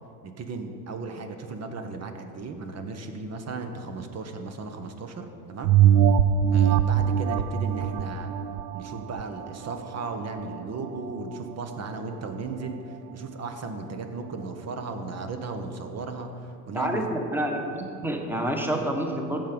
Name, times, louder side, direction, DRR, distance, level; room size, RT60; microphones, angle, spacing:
voice 1, 0.2-5.8 6.5-8.3 8.7-12.8 13.1-17.0, right 3 dB, 30° right, 6 dB, 1.1 m, -36 dB
sound 1, 5.6-10.6 11.1-11.2, right 9 dB, 75° right, 0.6 m, -22 dB
voice 2, 16.7-19.4, right 1 dB, 5° right, 3 dB, 1.4 m, -28 dB
14.5 x 5.6 x 5.2 m, 2.6 s
hypercardioid pair, 85°, 50 cm